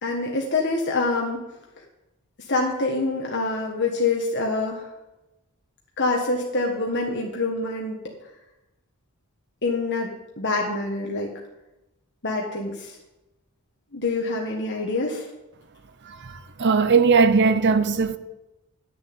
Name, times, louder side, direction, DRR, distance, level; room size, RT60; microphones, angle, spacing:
voice 1, 0.0-1.4 1.8-1.9 2.5-4.9 6.0-8.0 9.6-10.1 10.4-11.3 12.2-13.0 13.9-15.3, left 3 dB, 55° left, 1.5 m, -25 dB
voice 2, 16.1-18.2, right 5 dB, 55° right, 0.7 m, -19 dB
11.0 x 7.0 x 7.8 m
head